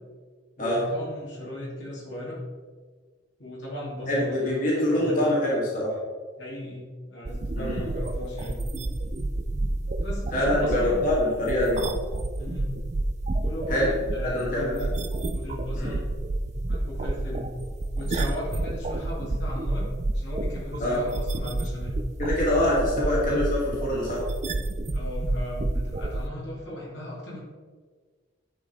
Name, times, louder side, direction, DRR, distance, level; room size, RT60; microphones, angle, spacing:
voice 1, 0.6-2.4 3.4-5.5 6.4-8.6 9.8-11.0 12.4-12.7 13.4-14.9 15.3-16.0 16.7-17.5 17.9-19.9 20.1-22.0 24.9-27.4, left 1 dB, 65° left, -5 dB, 2.5 m, -36 dB
voice 2, 4.1-5.9 7.5-7.8 10.3-11.8 13.7-13.9 14.3-14.9 15.7-16.0 20.8-21.0 22.2-24.3, left 1 dB, 45° left, -6 dB, 2.4 m, -25 dB
sound 1, 7.3-26.3, right 2 dB, 35° right, 0.5 m, -30 dB
10.5 x 5.1 x 4.3 m, 1.5 s
head